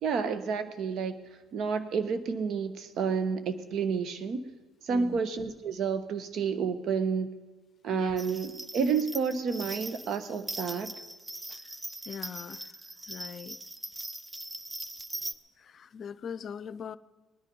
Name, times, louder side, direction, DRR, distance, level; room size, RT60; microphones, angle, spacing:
voice 1, 0.0-1.2 1.5-4.4 4.8-7.3 7.8-10.9, right 5 dB, 65° right, 11 dB, 1.0 m, -30 dB
voice 2, 4.9-5.2 7.9-8.2 11.5-11.6 12.1-12.7 13.1-13.6 15.6-17.0, left 7 dB, 50° left, 17 dB, 0.5 m, -41 dB
sound 1, 8.2-15.3, right 1 dB, 15° right, 0.6 m, -41 dB
19.5 x 10.0 x 5.4 m, 1.3 s
supercardioid pair, 70°, 0 cm